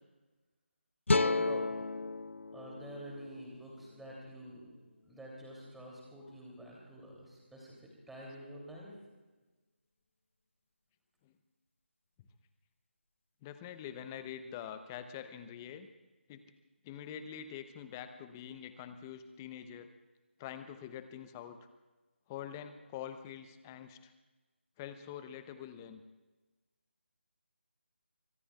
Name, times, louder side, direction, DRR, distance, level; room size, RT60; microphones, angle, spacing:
sound 1, 1.1-4.3, left 3 dB, 85° left, 0.5 m, -33 dB
voice 1, 1.1-1.9 2.5-4.7 5.0-8.9, equal, 5° right, -3 dB, 2.8 m, -48 dB
voice 2, 13.4-15.9 16.3-16.4 16.8-19.9 20.4-21.6 22.3-24.1 24.8-26.0, left 9 dB, 15° left, 10 dB, 0.7 m, -45 dB
24.5 x 19.5 x 2.4 m, 1.2 s
figure-of-eight pair, 160°, 7 cm